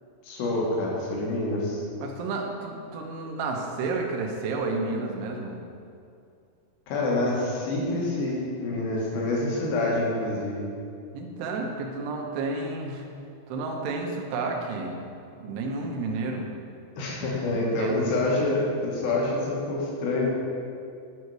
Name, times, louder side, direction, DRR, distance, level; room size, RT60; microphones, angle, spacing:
voice 1, 0.2-1.8 6.9-10.7 17.0-20.3, left 2 dB, 65° left, -4 dB, 3.4 m, -27 dB
voice 2, 2.0-5.6 11.1-13.0 13.5-15.0 15.4-16.5 17.1-18.1, right 3 dB, 75° right, 1 dB, 2.6 m, -31 dB
9.3 x 5.6 x 4.8 m, 2.4 s
omnidirectional pair, 5.7 m